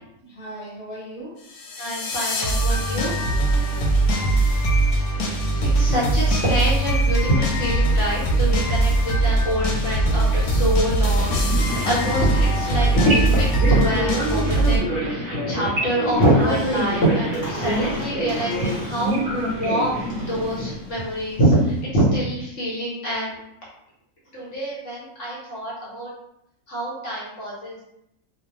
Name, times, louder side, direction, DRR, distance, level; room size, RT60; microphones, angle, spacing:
voice 1, 0.2-1.4 3.2-4.6, right 1 dB, 5° right, -10 dB, 1.0 m, -40 dB
sound 1, 1.5-14.8, right 2 dB, 85° left, 1.0 m, -21 dB
voice 2, 1.8-3.1 5.6-12.3 12.5-23.4 24.3-26.1 26.7-27.8, right 1 dB, 65° left, -7 dB, 1.0 m, -25 dB
sound 2, 11.2-20.7, equal, 50° right, 0.6 m, -27 dB
Squeak, 16.0-21.8, left 1 dB, 30° left, 0.5 m, -39 dB
2.5 x 2.0 x 2.9 m, 0.82 s
omnidirectional pair, 1.5 m